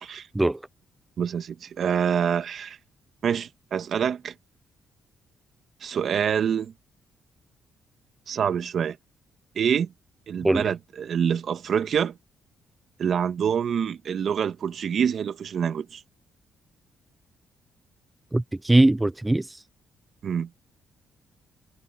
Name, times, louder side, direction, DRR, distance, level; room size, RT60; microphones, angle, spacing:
voice 1, 1.2-2.8 3.2-4.3 5.8-6.7 8.3-9.0 9.6-9.9 10.3-12.2 13.0-16.0 20.2-20.5, right 8 dB, 60° right, 2.1 m, -26 dB
voice 2, 18.3-19.6, right 1 dB, 10° right, 0.5 m, -21 dB
cardioid pair, 90°, 0 cm